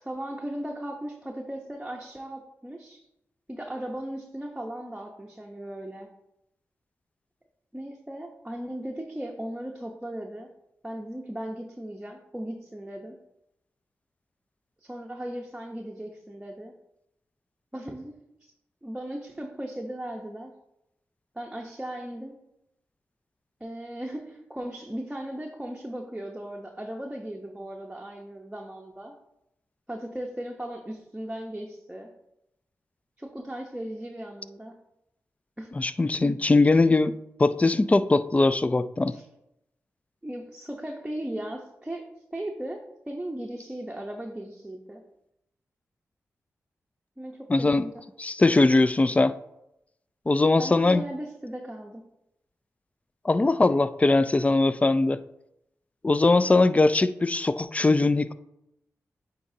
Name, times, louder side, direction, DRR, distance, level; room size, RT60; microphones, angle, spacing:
voice 1, 0.0-3.1 3.5-6.1 7.7-10.5 10.8-13.2 14.8-16.7 17.7-18.1 18.8-20.5 21.3-22.4 23.6-29.1 29.9-32.1 33.2-34.8 35.6-35.7 39.1-39.3 40.2-45.0 47.2-48.0 50.6-52.0, right 1 dB, 10° right, 0 dB, 0.8 m, -37 dB
voice 2, 35.8-37.1 37.4-39.2 47.5-47.9 48.2-49.3 50.3-51.0 53.2-55.2 56.0-58.3, left 2 dB, 25° left, 14 dB, 0.3 m, -21 dB
8.9 x 4.0 x 2.7 m, 0.84 s
cardioid pair, 45°, 6 cm